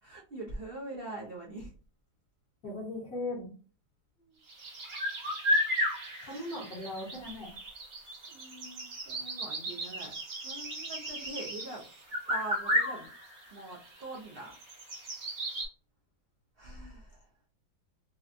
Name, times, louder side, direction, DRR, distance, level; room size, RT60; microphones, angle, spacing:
voice 1, 0.0-1.7 4.2-4.4 8.3-10.1 10.4-11.8 12.3-13.1 13.5-14.5 16.6-17.3, right 2 dB, 70° right, -4 dB, 0.5 m, -43 dB
voice 2, 2.6-3.5 6.2-7.5, left 2 dB, 55° left, -2 dB, 1.6 m, -38 dB
sound 1, 4.5-15.7, equal, 40° right, 1.0 m, -34 dB
4.2 x 2.2 x 2.5 m, 0.39 s
omnidirectional pair, 2.0 m